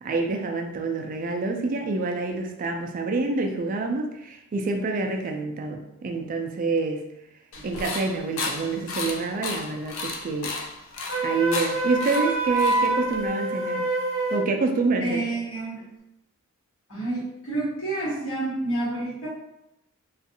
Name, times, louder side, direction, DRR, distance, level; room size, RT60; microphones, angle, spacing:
voice 1, 0.0-7.0 7.6-10.6 11.2-13.9 14.3-15.2, right 3 dB, 40° right, 3 dB, 0.3 m, -27 dB
sound 1, 7.5-13.3, left 3 dB, 60° left, 0.4 m, -34 dB
Wind instrument woodwind instrument, 11.1-14.5, right 2 dB, 45° left, 1.0 m, -26 dB
voice 2, 15.0-15.8 16.9-19.3, right 2 dB, 75° left, -11 dB, 1.3 m, -29 dB
2.5 x 2.4 x 2.6 m, 0.86 s
head